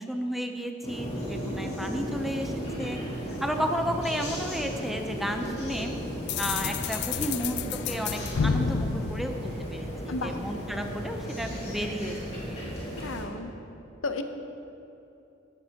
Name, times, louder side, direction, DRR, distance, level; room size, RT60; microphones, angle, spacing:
voice 1, 0.0-2.5 2.8-3.0 3.4-5.9 6.4-7.6 7.9-12.2 12.5-12.6, equal, ahead, 4 dB, 0.5 m, -32 dB
sound 1, 0.8-13.2, equal, 30° left, 2.5 m, -35 dB
sound 2, 6.3-10.1, left 6 dB, 55° left, 0.4 m, -30 dB
voice 2, 12.9-13.5 14.0-14.2, left 3 dB, 75° left, 7 dB, 0.8 m, -33 dB
14.0 x 11.5 x 2.9 m, 2.8 s
head